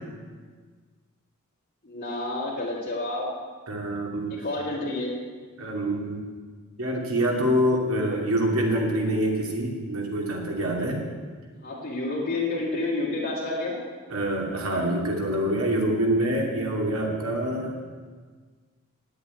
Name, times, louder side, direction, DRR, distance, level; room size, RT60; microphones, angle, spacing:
voice 1, 1.8-3.3 4.3-5.1 11.6-13.7, left 2 dB, 40° left, -8 dB, 2.9 m, -29 dB
voice 2, 3.7-4.3 5.6-6.2 6.8-11.0 14.1-17.7, right 1 dB, 65° right, 0 dB, 2.5 m, -26 dB
9.1 x 8.5 x 9.6 m, 1.5 s
head